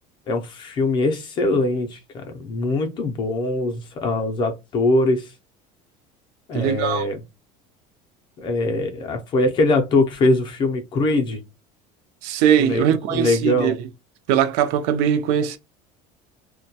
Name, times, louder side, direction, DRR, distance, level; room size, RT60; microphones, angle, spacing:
voice 1, 0.3-5.3 6.5-7.2 8.4-11.4 12.6-13.8, left 2 dB, 30° left, 0.4 m, -22 dB
voice 2, 6.5-7.0 12.2-13.8 14.3-15.6, right 9 dB, 75° right, 0.4 m, -20 dB
2.2 x 2.1 x 2.7 m
cardioid pair, 165°, 16 cm